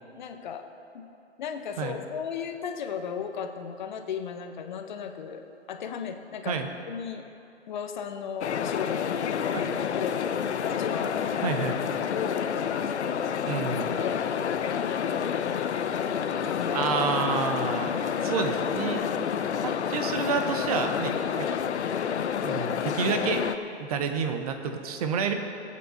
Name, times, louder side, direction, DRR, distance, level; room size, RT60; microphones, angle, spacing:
voice 1, 0.1-0.6 0.9-1.0 1.4-5.4 5.7-7.2 7.7-10.2 10.7-12.4 13.7-15.5 16.4-16.8, left 7 dB, 40° left, 6 dB, 0.8 m, -36 dB
sound 1, 8.4-23.6, left 8 dB, 75° left, 0.6 m, -29 dB
voice 2, 11.4-11.8 13.5-14.0 16.7-19.1 19.6-21.5 22.4-23.4 23.8-25.3, right 5 dB, 35° right, 6 dB, 0.8 m, -29 dB
20.0 x 8.4 x 2.7 m, 2.9 s
hypercardioid pair, 140°, 34 cm